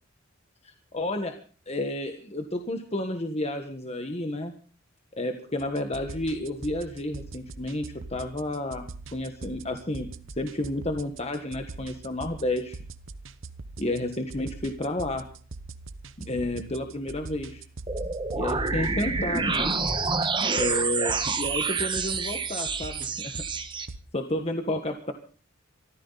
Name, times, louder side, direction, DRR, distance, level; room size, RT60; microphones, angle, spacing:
voice 1, 0.6-1.4 1.7-4.5 5.2-10.1 10.4-12.8 13.8-15.3 16.2-17.6 18.3-19.7 20.5-23.4 24.1-25.1, left 1 dB, 30° left, 5 dB, 1.5 m, -31 dB
sound 1, 5.6-24.0, right 3 dB, 65° right, 1.0 m, -43 dB
sound 2, 17.9-23.9, right 4 dB, 25° right, 1.4 m, -28 dB
24.5 x 14.5 x 4.1 m, 0.41 s
head